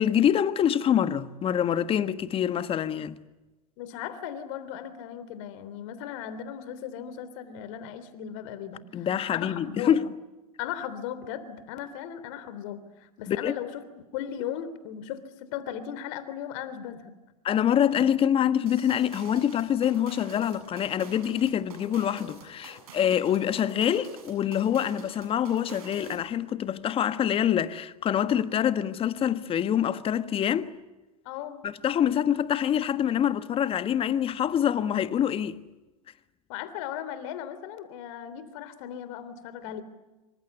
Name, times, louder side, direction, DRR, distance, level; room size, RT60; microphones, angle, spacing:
voice 1, 0.0-3.2 8.9-10.1 13.3-13.5 17.4-30.7 31.6-35.6, left 9 dB, 30° left, 1.5 m, -25 dB
voice 2, 3.8-10.0 10.6-13.8 14.1-17.1 31.2-31.6 36.5-39.8, left 10 dB, 55° left, 3.3 m, -37 dB
sound 1, 18.7-26.3, right 3 dB, 70° right, 7.4 m, -47 dB
27.0 x 24.5 x 8.1 m
hypercardioid pair, 90°, 19 cm